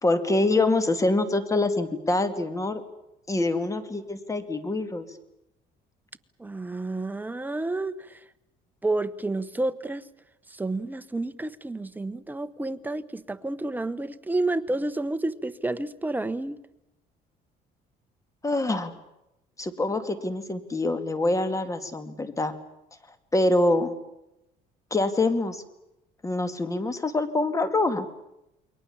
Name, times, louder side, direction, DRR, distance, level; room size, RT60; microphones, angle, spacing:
voice 1, 0.0-2.8 3.3-5.1 18.4-19.0 19.6-22.5 23.3-23.9 24.9-25.6 26.2-28.1, left 2 dB, 20° left, 2.4 m, -25 dB
voice 2, 6.4-8.2 8.8-10.0 10.5-16.6, right 2 dB, 10° right, 1.1 m, -30 dB
29.0 x 22.5 x 7.3 m
cardioid pair, 110°, 17 cm